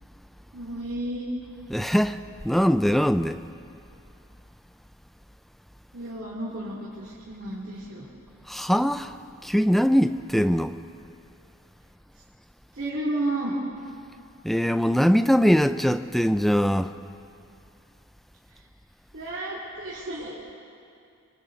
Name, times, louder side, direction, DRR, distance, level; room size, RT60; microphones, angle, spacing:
voice 1, 0.5-1.3 5.9-8.1 12.7-13.6 19.1-20.3, right 1 dB, 55° right, -8 dB, 3.0 m, -32 dB
voice 2, 1.7-3.4 8.5-9.1 9.4-10.7 14.4-16.9, equal, ahead, 10 dB, 0.4 m, -22 dB
26.5 x 24.0 x 4.1 m, 2.5 s
head